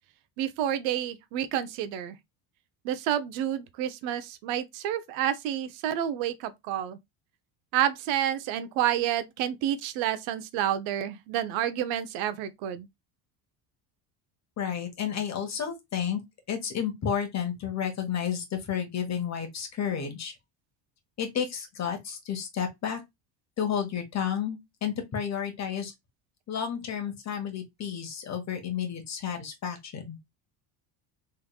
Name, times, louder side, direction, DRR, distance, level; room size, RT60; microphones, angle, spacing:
voice 1, 0.4-2.2 2.8-7.0 7.7-12.9, right 11 dB, 75° right, 0.8 m, -29 dB
voice 2, 14.6-16.2 16.5-20.3 21.2-23.0 23.6-25.9 26.5-30.2, left 8 dB, 35° left, 1.4 m, -31 dB
3.6 x 3.3 x 2.2 m
cardioid pair, 135°, 45 cm